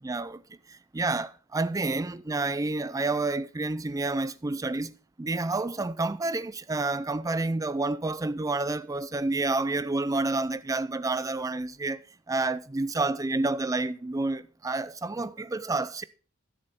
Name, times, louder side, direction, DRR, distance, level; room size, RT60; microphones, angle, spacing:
voice 1, 0.0-4.9 5.2-12.0 12.3-16.0, right 2 dB, 15° right, 0.4 m, -29 dB
12.5 x 7.1 x 4.2 m
head